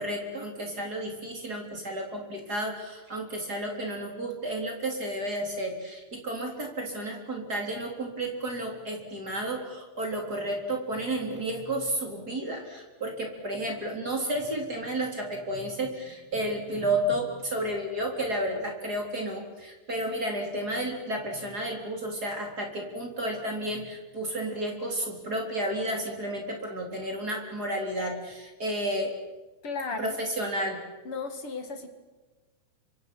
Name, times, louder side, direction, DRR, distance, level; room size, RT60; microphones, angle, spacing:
voice 1, 0.0-29.1 30.0-30.8, right 1 dB, 25° right, 1 dB, 3.6 m, -32 dB
voice 2, 29.6-30.2 31.0-31.9, left 4 dB, 45° left, 6 dB, 2.1 m, -34 dB
30.0 x 25.5 x 6.1 m, 1.2 s
omnidirectional pair, 4.9 m